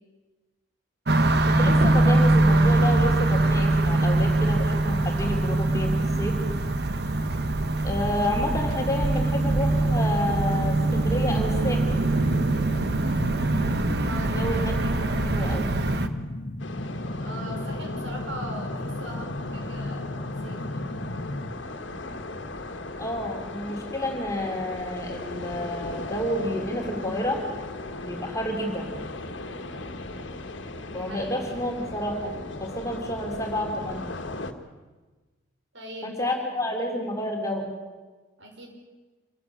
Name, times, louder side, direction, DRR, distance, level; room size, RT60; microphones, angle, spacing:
sound 1, 1.1-16.1, right 2 dB, 55° right, 1.3 m, -23 dB
voice 1, 1.5-6.4 7.8-12.0 14.2-14.9 15.2-15.7 23.0-27.4 28.0-29.0 30.9-32.3 32.6-34.1 36.0-37.7, left 1 dB, 15° left, 1 dB, 3.3 m, -30 dB
sound 2, 12.1-21.5, left 1 dB, 55° left, 1.5 m, -34 dB
voice 2, 14.0-14.5 14.9-15.5 17.2-20.9 30.7-31.3 35.7-36.8 38.4-38.7, right 1 dB, 75° right, 2 dB, 5.9 m, -41 dB
sound 3, 16.6-34.5, left 2 dB, 70° left, 1.8 m, -37 dB
26.0 x 15.5 x 8.7 m, 1.3 s
head